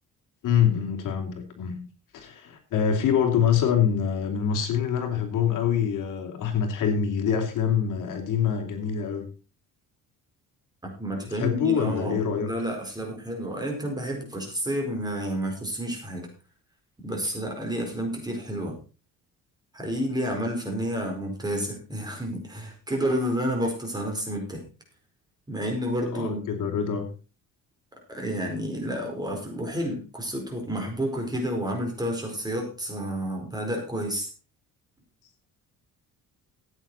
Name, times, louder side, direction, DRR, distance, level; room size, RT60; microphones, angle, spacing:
voice 1, 0.4-1.8 2.1-9.3 11.3-12.5 26.1-27.0, left 8 dB, 70° left, 4 dB, 3.1 m, -25 dB
voice 2, 10.8-16.3 17.0-18.7 19.7-24.6 25.5-26.4 28.1-34.3, equal, 10° right, 1 dB, 4.6 m, -30 dB
15.0 x 9.0 x 4.2 m, 0.34 s
cardioid pair, 140°, 33 cm